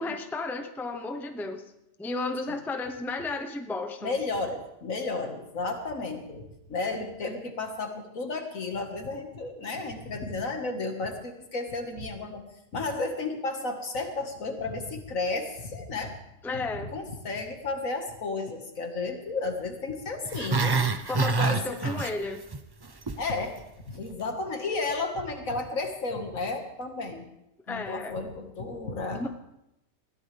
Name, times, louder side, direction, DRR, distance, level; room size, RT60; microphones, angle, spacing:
voice 1, 0.0-1.6 2.0-4.1 16.4-16.9 21.1-22.4 27.7-28.1 29.1-29.3, left 3 dB, ahead, 6 dB, 0.7 m, -33 dB
voice 2, 4.0-6.4 6.7-12.4 12.7-16.1 16.8-20.9 21.4-22.0 23.2-23.5 23.9-27.3 27.7-29.3, left 3 dB, 70° left, 4 dB, 2.1 m, -33 dB
Growling, 20.2-22.6 22.8-23.2 23.6-23.7, right 4 dB, 30° right, 0.4 m, -26 dB
21.0 x 14.5 x 3.4 m, 0.86 s
omnidirectional pair, 1.4 m